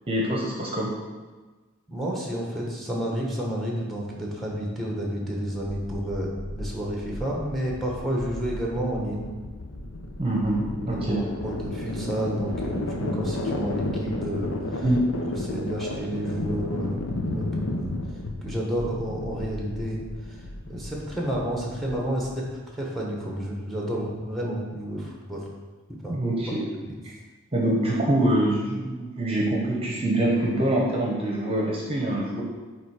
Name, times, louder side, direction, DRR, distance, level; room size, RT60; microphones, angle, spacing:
voice 1, 0.1-0.9 10.2-11.2 14.8-15.0 26.1-26.6 27.0-27.1 27.5-32.4, right 1 dB, 25° right, -2 dB, 1.0 m, -25 dB
voice 2, 1.9-9.3 10.9-14.8 15.3-17.0 17.3-17.9 18.4-20.0 20.3-20.4 20.6-22.5 22.7-25.5 26.0-26.1 26.8-26.9, equal, ahead, -2 dB, 1.2 m, -30 dB
sound 1, 5.6-22.6, left 2 dB, 65° left, 0.8 m, -33 dB
8.8 x 3.3 x 4.9 m, 1.3 s
head